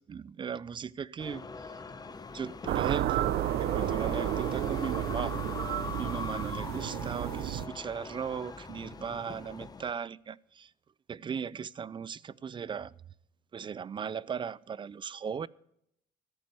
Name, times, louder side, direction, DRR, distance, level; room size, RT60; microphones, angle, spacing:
voice 1, 0.0-1.4 2.3-3.3 3.6-5.3 6.0-10.7 11.1-12.9 13.5-15.5, right 7 dB, 30° right, 0.4 m, -37 dB
sound 1, 1.2-9.9, left 4 dB, 25° left, 1.0 m, -41 dB
sound 2, 2.7-7.7, right 13 dB, 70° right, 0.7 m, -31 dB
14.0 x 8.7 x 6.8 m
cardioid pair, 110°, 17 cm